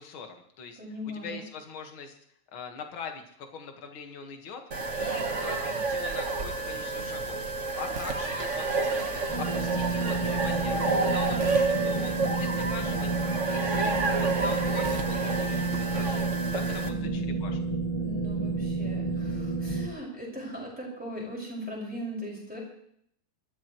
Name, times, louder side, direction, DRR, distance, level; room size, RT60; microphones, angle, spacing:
voice 1, 0.0-0.8 1.1-2.2 2.5-4.6 5.0-7.4 7.8-9.1 9.4-13.1 13.5-13.9 14.2-17.6, left 5 dB, 50° left, 4 dB, 2.1 m, -42 dB
voice 2, 0.8-1.4 11.2-11.4 13.7-14.1 16.8-17.4 18.0-22.6, equal, 5° right, -3 dB, 5.1 m, -39 dB
sound 1, 4.7-16.9, right 3 dB, 55° right, 0.8 m, -29 dB
sound 2, 9.3-19.9, right 3 dB, 20° left, 0.9 m, -30 dB
22.0 x 14.0 x 3.1 m, 0.69 s
omnidirectional pair, 3.4 m